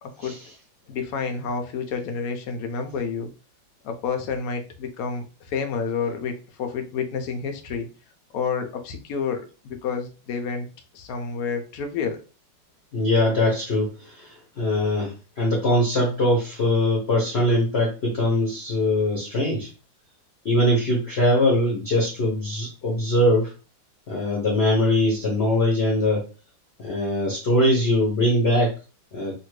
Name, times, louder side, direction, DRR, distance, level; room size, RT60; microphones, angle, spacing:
voice 1, 0.0-0.4 0.9-3.3 3.8-7.9 8.3-10.7 10.9-12.2, left 5 dB, 75° left, 5 dB, 0.8 m, -29 dB
voice 2, 12.9-19.7 20.4-23.5 24.1-26.2 26.8-28.7 29.1-29.3, left 1 dB, 50° left, -3 dB, 0.8 m, -22 dB
2.8 x 2.6 x 3.0 m, 0.33 s
omnidirectional pair, 2.1 m